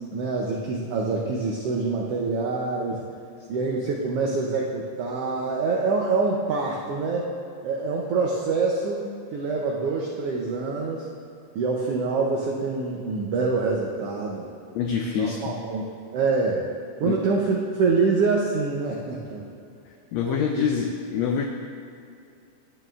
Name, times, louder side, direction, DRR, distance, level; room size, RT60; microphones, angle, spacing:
voice 1, 0.1-3.0 3.5-7.3 7.6-11.1 11.5-14.5 15.1-16.6 17.0-19.5 20.2-20.4, right 4 dB, 85° right, -2 dB, 1.3 m, -25 dB
voice 2, 14.7-15.6 17.0-17.2 20.1-21.4, left 7 dB, 85° left, 3 dB, 1.5 m, -25 dB
12.0 x 9.0 x 2.4 m, 2.5 s
omnidirectional pair, 3.6 m